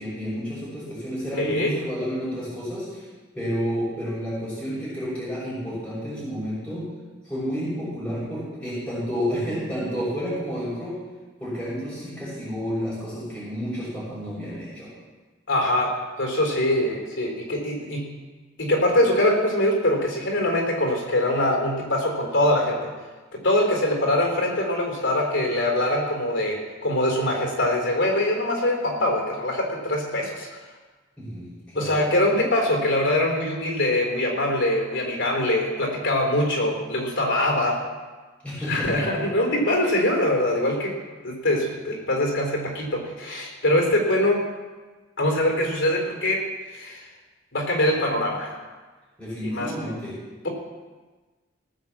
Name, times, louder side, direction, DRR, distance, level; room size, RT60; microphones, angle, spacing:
voice 1, 0.0-3.0 3.3-6.9 7.2-11.0 11.4-14.9 28.9-29.0 31.2-31.5 31.7-32.0 38.4-39.0 49.2-50.2, equal, 10° left, -13 dB, 5.9 m, -30 dB
voice 2, 1.4-1.8 15.5-18.2 18.6-22.9 23.3-30.6 31.7-37.8 38.6-40.9 41.2-44.4 45.2-47.1 47.5-48.6 49.4-49.7, left 1 dB, 75° left, 1 dB, 3.8 m, -23 dB
17.5 x 7.2 x 7.4 m, 1.3 s
head